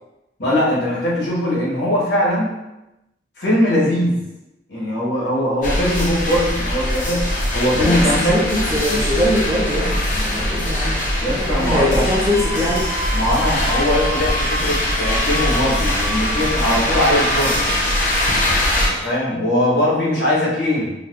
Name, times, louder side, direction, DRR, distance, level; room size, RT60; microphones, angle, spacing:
voice 1, 0.4-2.5 3.4-4.2 4.7-8.4 11.2-12.0 13.1-17.7 18.7-20.9, left 1 dB, 70° left, -6 dB, 1.2 m, -20 dB
sound 1, 5.6-18.9, left 1 dB, 45° left, 0.6 m, -21 dB
voice 2, 7.7-11.0 11.3-12.9, left 1 dB, 20° right, -4 dB, 0.5 m, -22 dB
sound 2, 12.3-19.1, equal, 80° right, 0.8 m, -30 dB
3.9 x 2.3 x 2.4 m, 0.93 s
head